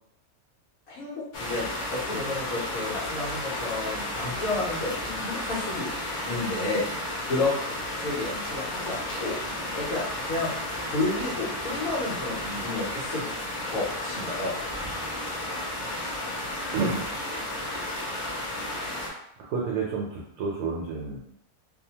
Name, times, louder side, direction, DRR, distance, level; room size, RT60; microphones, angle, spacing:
voice 1, 0.9-5.9 6.2-7.5 8.0-9.4 9.7-10.6 10.8-13.3 13.7-14.5, left 2 dB, 70° left, -6 dB, 1.2 m, -31 dB
sound 1, 1.3-19.1, left 1 dB, 50° left, 0.5 m, -33 dB
voice 2, 15.7-16.2 16.7-17.2 19.4-21.2, right 4 dB, 80° right, -2 dB, 1.0 m, -31 dB
2.7 x 2.1 x 2.8 m, 0.75 s
omnidirectional pair, 1.5 m